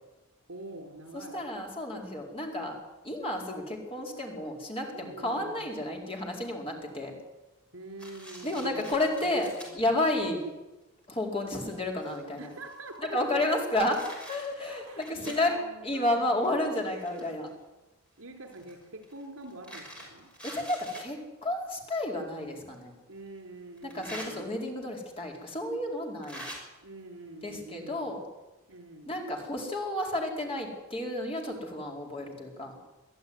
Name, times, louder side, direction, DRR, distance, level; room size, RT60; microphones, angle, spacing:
voice 1, 0.5-1.4 4.9-5.7 7.7-9.8 12.4-13.5 14.6-16.5 18.2-20.3 23.1-24.6 26.8-28.2 28.7-29.2, right 2 dB, 80° right, 4 dB, 4.5 m, -45 dB
voice 2, 1.1-2.8 3.0-7.1 8.4-10.4 11.1-12.5 13.1-14.0 14.3-15.6 15.8-17.5 20.4-22.9 23.8-26.4 27.4-28.2 29.1-32.7, left 1 dB, 25° left, 0 dB, 4.6 m, -31 dB
sound 1, 8.0-9.7 10.4-10.5 11.2-11.3 11.6-13.0 13.5-15.5 16.4-17.5 18.5-21.1 22.3-22.4 23.8-24.3 25.3-25.4 26.2-26.6, equal, 5° left, 6.1 m, -45 dB
23.5 x 14.5 x 9.7 m, 1.1 s
head